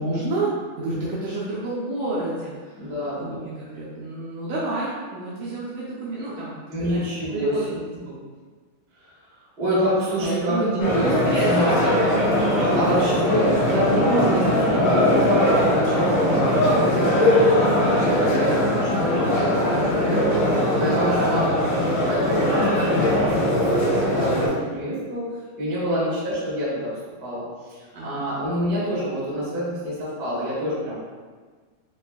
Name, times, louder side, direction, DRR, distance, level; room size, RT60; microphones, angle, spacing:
voice 1, 0.0-2.9 3.2-7.0 7.3-7.6 8.0-8.2 10.2-10.7 11.0-12.1 12.4-13.0 13.3-13.6 21.0-21.8 25.8-26.1 27.9-28.4, right 2 dB, 80° right, -8 dB, 1.7 m, -30 dB
voice 2, 2.8-3.4 6.7-7.8 9.2-9.3 9.6-11.1 11.4-11.9 12.7-21.8 22.1-25.2 25.6-26.9 27.2-30.9, equal, 45° right, -11 dB, 0.7 m, -27 dB
sound 1, 10.8-24.5, left 1 dB, 70° left, 1.9 m, -20 dB
5.2 x 2.5 x 2.3 m, 1.5 s
omnidirectional pair, 3.8 m